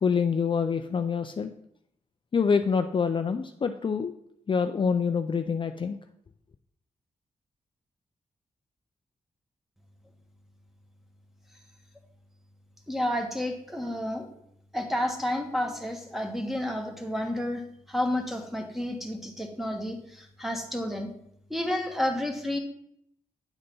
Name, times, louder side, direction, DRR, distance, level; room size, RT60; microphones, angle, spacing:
voice 1, 0.0-1.5 2.3-4.1 4.5-6.0, left 6 dB, 40° left, 7 dB, 0.4 m, -26 dB
voice 2, 12.9-14.2 14.7-21.1 21.5-22.6, left 1 dB, ahead, 3 dB, 1.4 m, -30 dB
9.0 x 4.0 x 5.3 m, 0.73 s
cardioid pair, 70°, 13 cm